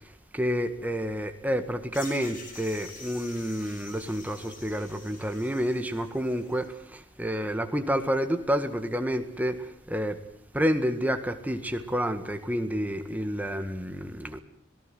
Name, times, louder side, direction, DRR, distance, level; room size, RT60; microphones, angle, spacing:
voice 1, 0.3-10.2 10.5-14.4, equal, 10° right, 1.8 m, -29 dB
sound 1, 1.9-6.7, left 3 dB, 45° left, 6.0 m, -47 dB
26.0 x 18.5 x 7.8 m
head